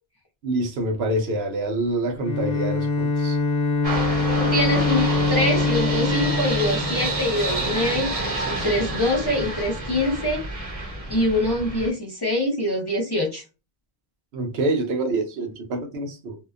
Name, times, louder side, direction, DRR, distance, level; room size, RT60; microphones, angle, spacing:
voice 1, 0.4-3.4 14.3-16.4, right 2 dB, 75° right, 0.9 m, -26 dB
Bowed string instrument, 2.2-7.8, left 3 dB, 65° left, 0.8 m, -24 dB
sound 1, 3.8-11.9, right 2 dB, 40° right, 0.8 m, -28 dB
voice 2, 4.4-8.1 8.5-10.4 11.1-13.4, left 1 dB, 30° left, 0.5 m, -24 dB
2.7 x 2.2 x 2.3 m
omnidirectional pair, 1.1 m